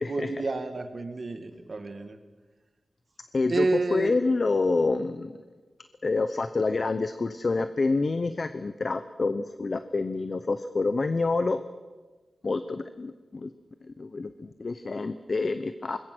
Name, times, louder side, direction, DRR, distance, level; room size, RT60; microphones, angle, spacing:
voice 1, 0.1-2.2 3.5-4.2, right 3 dB, 45° right, 8 dB, 1.9 m, -29 dB
voice 2, 3.3-3.7 3.9-5.3 6.0-11.6 12.4-13.5 14.0-16.0, left 3 dB, 40° left, 11 dB, 0.8 m, -27 dB
25.5 x 21.0 x 6.2 m, 1.3 s
wide cardioid pair, 145°, 0 cm